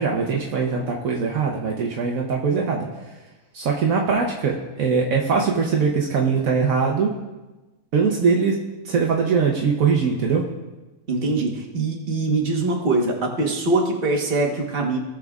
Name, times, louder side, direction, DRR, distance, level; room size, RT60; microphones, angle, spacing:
voice 1, 0.0-2.9 3.5-7.1 7.9-8.6 8.8-10.4, right 5 dB, 70° right, -1 dB, 1.3 m, -21 dB
voice 2, 11.1-15.0, right 2 dB, 40° right, -1 dB, 1.4 m, -23 dB
17.5 x 6.4 x 2.4 m, 1.1 s
omnidirectional pair, 1.5 m